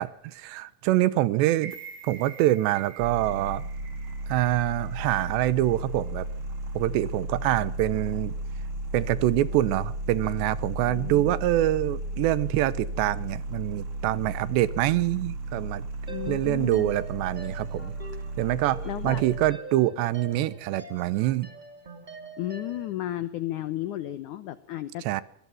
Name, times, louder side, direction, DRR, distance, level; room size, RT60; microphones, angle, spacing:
voice 1, 0.0-1.8 2.0-3.7 4.3-6.3 6.7-8.3 8.9-15.8 16.3-17.9 18.4-21.5 25.0-25.2, right 15 dB, 85° right, 19 dB, 3.1 m, -25 dB
sound 1, 1.6-5.7 6.1-6.2, right 7 dB, 60° right, 5.2 m, -46 dB
sound 2, 3.0-19.4, right 1 dB, 40° right, 3.1 m, -34 dB
voice 2, 10.9-11.3 16.1-16.9 18.9-19.2 22.4-25.2, left 14 dB, 90° left, 14 dB, 1.7 m, -33 dB
sound 3, 16.1-22.9, right 2 dB, 15° right, 1.8 m, -44 dB
25.0 x 18.0 x 5.8 m, 0.68 s
omnidirectional pair, 4.9 m